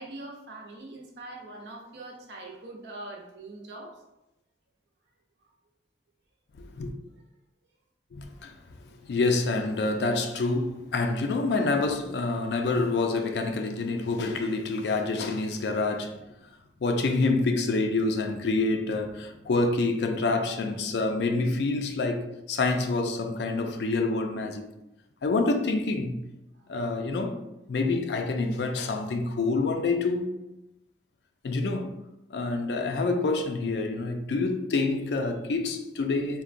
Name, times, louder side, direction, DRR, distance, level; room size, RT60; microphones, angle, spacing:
voice 1, 0.0-4.0 8.3-8.5 9.0-9.1 26.5-26.7, right 2 dB, 75° right, 0.7 m, -43 dB
voice 2, 6.6-6.9 8.1-8.5 9.1-16.2 16.8-24.7 25.2-26.2 26.7-27.4 27.7-30.4 31.4-31.9 32.3-36.4, left 3 dB, 70° left, 0.4 m, -27 dB
3.7 x 2.2 x 2.5 m
head